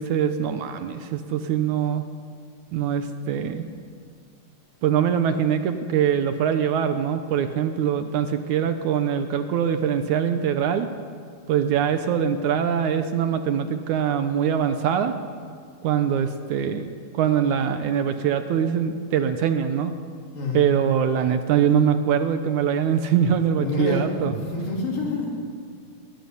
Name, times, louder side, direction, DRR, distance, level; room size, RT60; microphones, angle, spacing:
voice 1, 0.0-2.0 2.7-3.7 4.8-10.9 11.5-15.2 15.8-19.9 20.5-24.4, right 8 dB, 70° right, 8 dB, 2.1 m, -23 dB
voice 2, 20.3-20.7 23.5-25.3, left 2 dB, 75° left, -1 dB, 5.0 m, -27 dB
21.0 x 12.5 x 9.8 m, 2.1 s
omnidirectional pair, 3.9 m